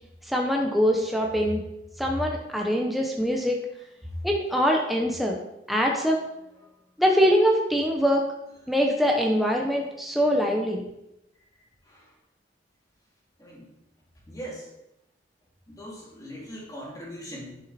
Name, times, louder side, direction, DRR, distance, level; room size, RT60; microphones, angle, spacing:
voice 1, 0.3-1.6 2.0-3.6 4.2-5.4 5.7-6.2 7.0-8.3 8.7-10.8, equal, ahead, 0 dB, 0.9 m, -23 dB
voice 2, 13.4-13.7 14.3-14.7 15.7-17.6, equal, 20° left, -4 dB, 2.9 m, -40 dB
11.0 x 6.5 x 4.3 m, 0.88 s
head